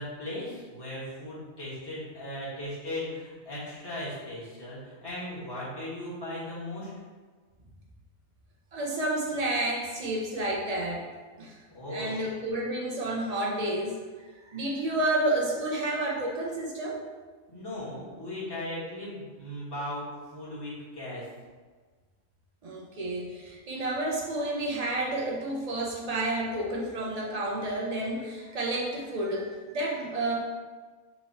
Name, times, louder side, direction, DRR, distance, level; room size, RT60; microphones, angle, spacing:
voice 1, 0.0-6.9 11.7-12.3 17.5-20.0 20.3-21.2, left 1 dB, 15° left, -10 dB, 1.4 m, -37 dB
voice 2, 8.7-11.1 11.4-11.6 11.9-14.0 14.3-17.0 22.6-30.3, right 1 dB, 65° right, -3 dB, 0.3 m, -30 dB
3.7 x 2.9 x 4.1 m, 1.4 s
omnidirectional pair, 1.5 m